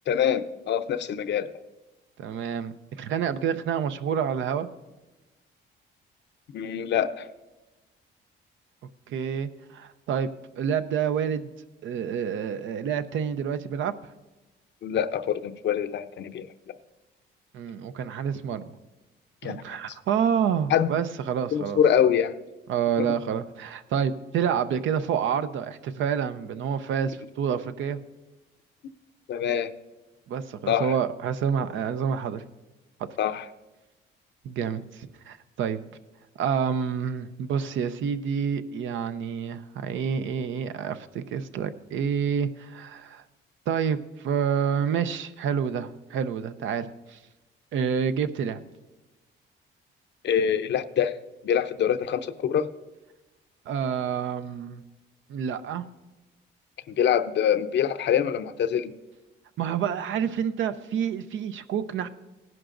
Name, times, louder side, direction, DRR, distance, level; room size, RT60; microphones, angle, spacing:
voice 1, 0.1-1.5 6.5-7.3 14.8-16.5 19.4-19.8 20.7-20.9 21.5-22.3 23.0-23.1 29.3-29.7 30.7-30.9 33.2-33.4 50.2-51.2 51.4-52.7 56.9-58.9, left 9 dB, 65° left, 10 dB, 0.6 m, -25 dB
voice 2, 2.2-4.7 9.1-10.3 10.6-11.5 11.8-13.9 17.5-18.6 19.4-21.8 22.7-28.0 30.3-32.4 34.4-35.8 36.4-43.2 43.7-47.2 47.7-48.6 53.7-54.8 55.3-55.9 59.6-62.1, right 7 dB, 75° right, 10 dB, 0.7 m, -28 dB
17.5 x 10.5 x 2.6 m, 1.1 s
cardioid pair, 90°, 20 cm